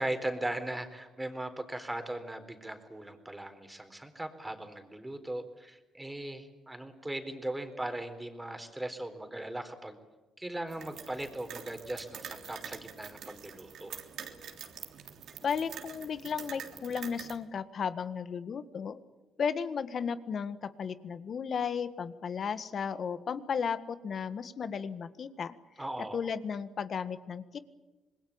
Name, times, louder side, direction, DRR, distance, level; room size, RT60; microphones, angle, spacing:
voice 1, 0.0-10.0 10.4-13.9 25.8-26.2, right 1 dB, 10° right, 7 dB, 4.1 m, -38 dB
sound 1, 10.7-17.4, right 8 dB, 70° right, 3.4 m, -46 dB
voice 2, 15.4-19.0 19.4-25.5 26.1-27.6, left 6 dB, 55° left, 12 dB, 1.7 m, -34 dB
26.5 x 21.0 x 8.9 m, 1.2 s
cardioid pair, 80°, 0 cm